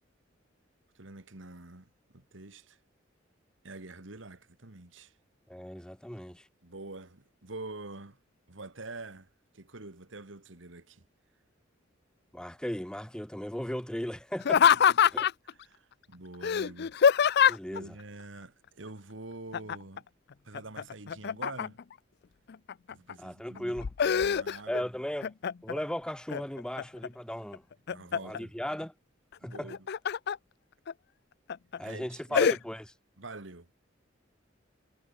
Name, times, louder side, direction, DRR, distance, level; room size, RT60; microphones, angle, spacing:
voice 1, 0.9-2.8 3.6-5.2 6.6-8.2 8.5-9.3 9.5-11.1 14.7-15.2 15.4-16.9 17.4-20.0 20.4-21.8 22.9-23.8 24.0-24.9 27.9-28.5 29.4-29.9 31.8-32.5 33.2-33.7, right 2 dB, 75° right, 2.1 m, -46 dB
voice 2, 5.5-6.5 12.3-14.7 15.1-15.3 17.5-18.0 23.2-23.9 24.7-25.3 25.6-27.6 28.2-28.9 29.4-29.7 31.8-32.8, equal, 5° left, 0.8 m, -36 dB
Laughter, 14.4-15.5 16.4-17.8 19.5-20.0 20.3-21.9 22.5-23.1 23.6-24.8 25.2-25.8 26.3-27.1 27.5-28.4 29.5-30.4 30.9-31.0 31.5-31.8 32.3-32.6, left 7 dB, 60° left, 0.5 m, -25 dB
head